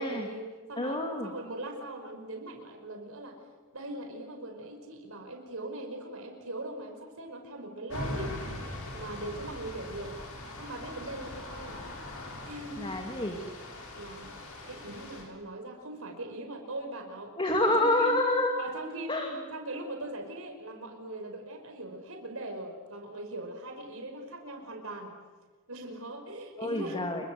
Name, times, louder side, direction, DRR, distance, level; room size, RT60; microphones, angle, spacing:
voice 1, 0.0-3.4 3.7-8.3 8.9-10.2 10.6-11.8 12.4-12.9 14.0-14.4 14.7-17.3 17.6-18.2 18.6-25.1 25.7-27.1, right 1 dB, 75° right, 4 dB, 5.5 m, -40 dB
voice 2, 0.8-1.3 12.8-13.4 17.4-18.6 19.1-19.3 26.6-27.2, left 1 dB, 25° left, 2 dB, 2.6 m, -27 dB
sound 1, 7.9-15.2, left 1 dB, 80° left, 7.7 m, -41 dB
28.0 x 24.0 x 7.9 m, 1.4 s
head